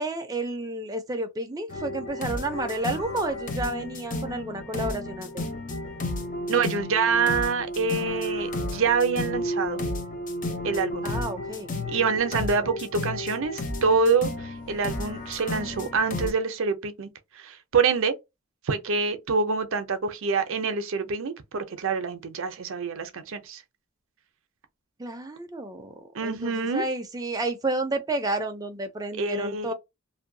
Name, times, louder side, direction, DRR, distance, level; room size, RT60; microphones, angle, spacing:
voice 1, 0.0-5.4 11.0-11.7 12.3-12.7 25.0-29.7, right 2 dB, 15° right, 0.5 m, -31 dB
sound 1, 1.7-16.3, left 1 dB, 35° left, 0.5 m, -32 dB
voice 2, 6.5-9.8 10.6-11.1 11.9-18.1 18.6-23.6 26.1-26.8 29.2-29.7, right 5 dB, 60° right, 0.5 m, -26 dB
2.6 x 2.2 x 2.6 m
head